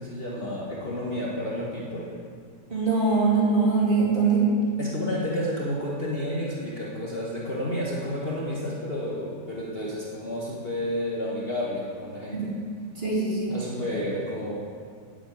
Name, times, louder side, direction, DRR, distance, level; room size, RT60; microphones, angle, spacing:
voice 1, 0.0-2.1 4.8-12.5 13.5-14.6, equal, 35° left, -5 dB, 1.4 m, -31 dB
voice 2, 2.7-4.5 12.3-12.4 13.0-13.5, right 4 dB, 30° right, -6 dB, 3.0 m, -22 dB
8.3 x 7.8 x 8.7 m, 2.2 s
omnidirectional pair, 1.8 m